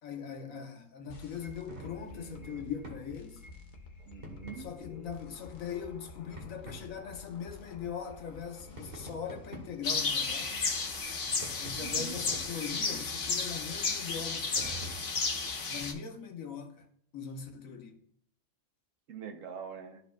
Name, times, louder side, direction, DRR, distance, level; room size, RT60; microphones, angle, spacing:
voice 1, 0.0-3.4 4.6-10.6 11.6-15.1 15.7-16.9 17.1-18.0, left 7 dB, 80° left, 1.3 m, -41 dB
sound 1, 1.1-10.1, left 3 dB, 40° left, 1.0 m, -51 dB
sound 2, 1.2-3.1 4.2-4.7 6.4-6.9 8.8-9.9 11.4-12.7 14.6-14.9, right 1 dB, 45° right, 1.8 m, -46 dB
voice 2, 4.0-4.7 11.8-12.2 19.1-20.0, right 7 dB, 70° right, 1.2 m, -44 dB
sound 3, 9.8-15.9, left 4 dB, 60° left, 1.4 m, -33 dB
13.0 x 5.1 x 2.3 m
omnidirectional pair, 1.4 m